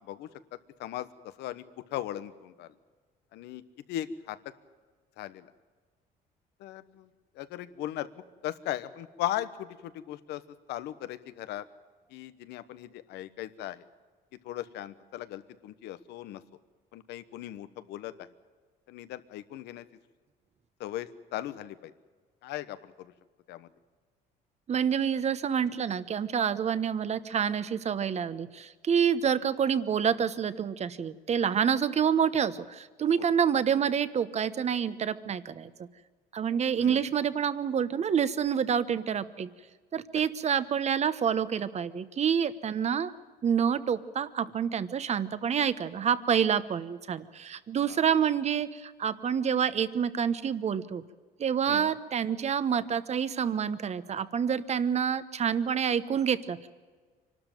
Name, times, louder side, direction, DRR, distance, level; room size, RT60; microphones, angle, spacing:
voice 1, 1.9-2.7 3.3-3.6 3.9-4.4 5.2-5.5 6.6-7.1 7.3-8.1 8.4-10.4 10.7-11.6 12.1-13.8 14.4-16.4 16.9-18.3 18.9-19.8 20.8-21.9 22.4-23.1 23.5-23.7 36.8-37.0 47.9-48.0 51.7-51.9, left 13 dB, 85° left, 14 dB, 1.1 m, -37 dB
voice 2, 24.7-35.9 36.3-39.5 39.9-43.1 43.4-51.0 51.4-56.7, right 8 dB, 40° right, 15 dB, 1.1 m, -28 dB
25.0 x 12.5 x 9.1 m, 1.5 s
cardioid pair, 110°, 17 cm